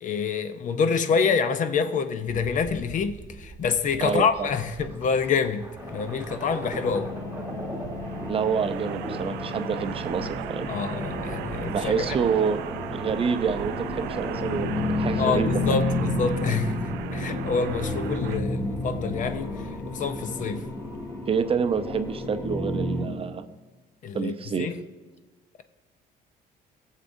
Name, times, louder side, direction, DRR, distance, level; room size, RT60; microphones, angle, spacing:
voice 1, 0.0-7.1 10.7-12.1 15.2-19.5 19.9-20.6 24.0-24.8, left 5 dB, 50° left, 0.6 m, -27 dB
sound 1, 2.3-9.4, right 2 dB, 15° right, 1.2 m, -41 dB
voice 2, 4.0-4.5 8.3-10.7 11.7-12.6 12.9-14.7 15.0-15.5 21.3-23.4 24.1-24.7, right 6 dB, 35° right, 0.5 m, -27 dB
sound 2, 4.6-21.1, right 12 dB, 85° right, 0.4 m, -38 dB
sound 3, 5.8-23.0, left 2 dB, 20° left, 2.3 m, -31 dB
18.0 x 7.3 x 2.6 m
cardioid pair, 110°, 17 cm